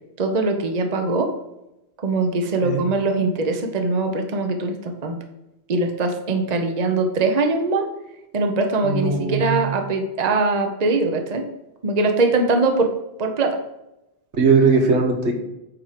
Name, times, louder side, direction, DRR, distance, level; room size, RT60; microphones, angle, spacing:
voice 1, 0.2-1.3 2.0-5.2 5.7-7.9 8.3-11.5 11.8-12.9 13.2-13.6, right 3 dB, 40° right, 4 dB, 0.9 m, -22 dB
voice 2, 8.8-9.6 14.4-15.4, right 4 dB, 80° right, 2 dB, 1.6 m, -19 dB
8.7 x 4.4 x 5.0 m, 0.91 s
omnidirectional pair, 1.1 m